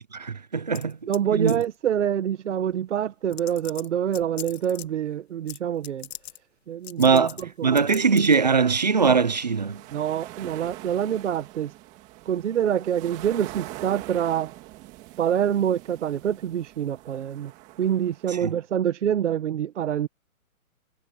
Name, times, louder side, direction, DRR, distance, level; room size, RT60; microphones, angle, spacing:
voice 1, 0.1-1.0 1.3-1.6 7.0-9.8 18.3-18.6, right 5 dB, 30° right, 0.4 m, -21 dB
sound 1, 0.7-1.2 1.5-1.8 2.7-2.8 3.3-4.9 5.5-5.6 5.8-6.4 6.8-7.4 7.8-8.3, left 10 dB, 45° left, 1.9 m, -40 dB
voice 2, 1.1-6.1 6.7-7.3 7.6-7.8 9.9-11.7 12.3-14.5 15.2-17.5 17.8-20.1, right 9 dB, 55° right, 1.5 m, -26 dB
sound 2, 9.2-18.4, right 18 dB, 15° right, 2.0 m, -43 dB
hypercardioid pair, 165°, 42 cm